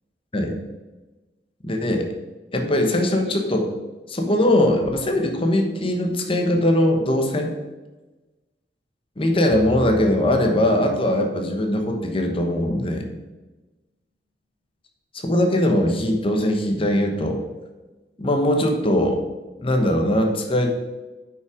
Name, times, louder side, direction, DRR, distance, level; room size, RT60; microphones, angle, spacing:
voice 1, 1.6-2.1 2.5-3.7 4.1-7.5 9.2-13.0 15.1-17.4 18.2-19.2 19.6-20.7, left 1 dB, 30° left, 3 dB, 1.1 m, -21 dB
sound 1, 9.5-11.7, left 1 dB, 5° left, 0.9 m, -37 dB
8.9 x 5.7 x 4.9 m, 1.2 s
head